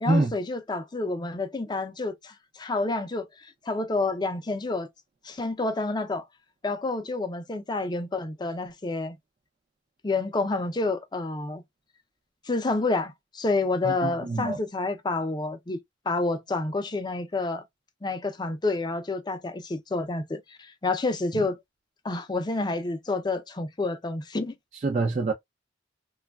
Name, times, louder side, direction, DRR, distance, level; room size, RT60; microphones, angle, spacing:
voice 1, 0.0-4.9 5.2-6.3 6.6-9.1 10.0-11.6 12.5-15.8 16.1-17.6 18.0-21.6 22.0-24.5, left 3 dB, 25° left, 0.5 m, -29 dB
voice 2, 13.8-14.6 24.8-25.3, right 3 dB, 40° right, 0.4 m, -25 dB
3.1 x 2.3 x 2.2 m
head